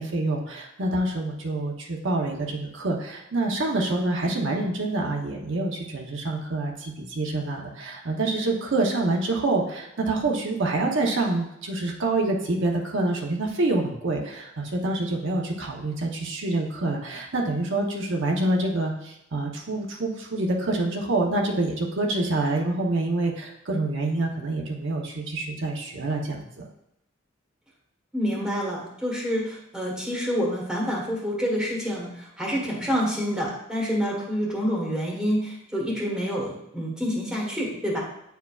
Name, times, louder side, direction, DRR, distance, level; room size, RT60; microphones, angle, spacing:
voice 1, 0.0-26.7, right 2 dB, 65° right, 0 dB, 0.9 m, -26 dB
voice 2, 28.1-38.0, equal, 5° right, -4 dB, 1.3 m, -27 dB
9.1 x 4.6 x 2.4 m, 0.80 s
head